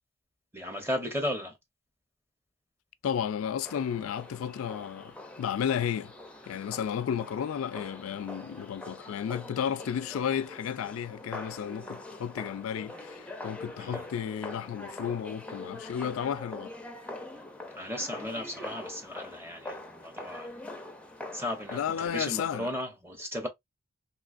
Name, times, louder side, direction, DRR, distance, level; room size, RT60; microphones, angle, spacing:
voice 1, 0.5-1.6 13.8-14.1 17.7-20.5 21.3-23.5, left 1 dB, 10° right, 0.8 m, -35 dB
voice 2, 3.0-6.1 6.5-16.7 21.7-22.7, left 8 dB, 90° left, 0.3 m, -33 dB
sound 1, 3.6-22.1, left 2 dB, 5° left, 0.5 m, -44 dB
3.1 x 3.0 x 2.4 m
head